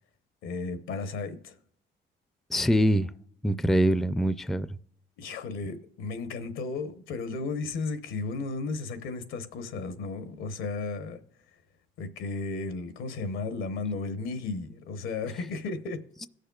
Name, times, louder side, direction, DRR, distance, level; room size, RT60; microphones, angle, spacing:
voice 1, 0.4-1.6 5.2-11.2 12.0-16.0, left 3 dB, 90° left, 1.0 m, -34 dB
voice 2, 2.5-3.1 3.4-4.8, equal, ahead, 0.3 m, -24 dB
17.5 x 6.5 x 2.3 m
cardioid pair, 90°, 20 cm